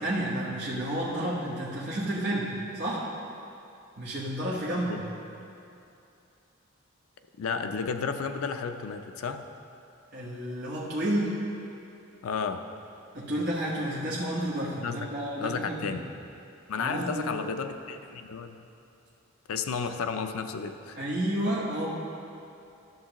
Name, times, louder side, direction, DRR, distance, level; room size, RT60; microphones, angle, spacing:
voice 1, 0.0-3.1 4.0-5.1 10.1-11.4 13.1-16.0 16.8-17.3 21.0-21.9, right 1 dB, 50° right, -7 dB, 1.2 m, -31 dB
voice 2, 7.4-9.4 12.2-12.7 14.8-15.1 15.4-16.0 16.7-18.7 19.5-21.0, left 5 dB, 90° left, 8 dB, 0.5 m, -32 dB
12.0 x 6.7 x 3.0 m, 2.7 s
head